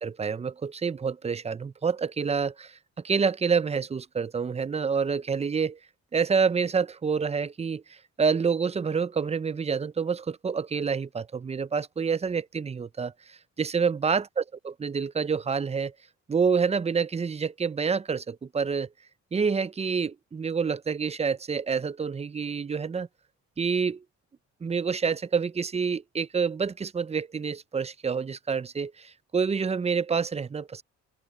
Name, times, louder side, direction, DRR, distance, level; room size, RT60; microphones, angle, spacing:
voice 1, 0.0-2.8 3.0-5.8 6.1-15.9 16.3-18.9 19.3-23.1 23.6-24.0 24.6-30.8, right 5 dB, 20° right, 0.6 m, -28 dB
cardioid pair, 90°, 30 cm